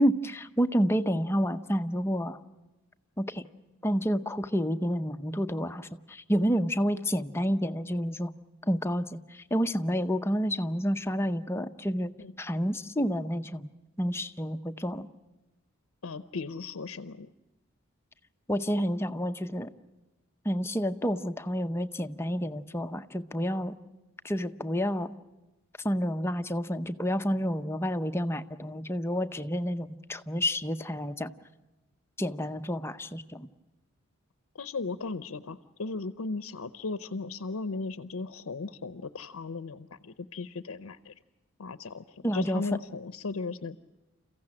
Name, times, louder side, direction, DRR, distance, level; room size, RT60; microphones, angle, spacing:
voice 1, 0.0-2.4 3.2-3.4 3.8-8.3 8.7-12.1 12.4-13.7 14.0-15.1 18.5-19.7 20.4-23.7 24.2-25.1 25.8-31.3 32.2-33.5 42.2-42.6, equal, 10° left, 8 dB, 0.7 m, -29 dB
voice 2, 16.0-17.3 34.5-41.1 41.6-43.8, left 3 dB, 85° left, 12 dB, 0.7 m, -36 dB
29.0 x 15.0 x 8.7 m, 1.1 s
head